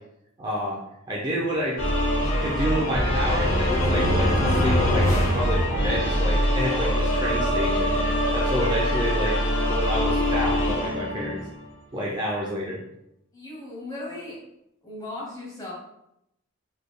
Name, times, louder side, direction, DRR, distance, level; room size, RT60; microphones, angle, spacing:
voice 1, 0.4-0.8 1.1-1.8 2.4-8.0 8.3-11.4 11.9-12.8, equal, 20° right, -4 dB, 0.5 m, -29 dB
sound 1, 1.8-11.7, equal, 70° left, 1.0 m, -24 dB
sound 2, 1.9-6.2, equal, 35° left, 0.6 m, -26 dB
voice 2, 13.3-14.4 14.8-15.7, left 2 dB, 20° left, -5 dB, 1.3 m, -37 dB
4.1 x 3.3 x 2.2 m, 0.82 s
head